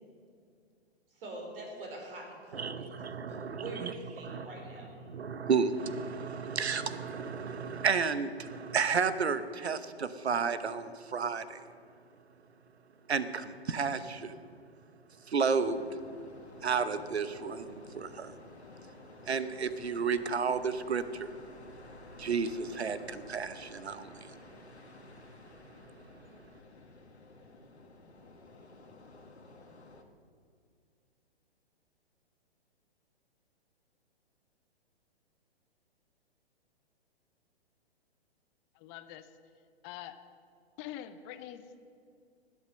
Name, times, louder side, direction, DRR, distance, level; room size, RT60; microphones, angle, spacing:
voice 1, 1.1-5.1, right 2 dB, 60° right, 1 dB, 4.4 m, -44 dB
voice 2, 2.5-3.9 4.2-4.5 5.0-11.6 13.1-14.3 15.3-15.9 16.6-18.4 19.2-21.3 22.2-24.4, right 5 dB, 75° right, 12 dB, 1.1 m, -32 dB
sound 1, 15.4-30.0, left 3 dB, 85° left, 1.8 m, -52 dB
voice 3, 38.7-39.3 39.8-40.1 40.8-41.8, left 11 dB, 25° left, 10 dB, 0.8 m, -44 dB
20.0 x 8.2 x 6.4 m, 2.3 s
figure-of-eight pair, 120°, 32 cm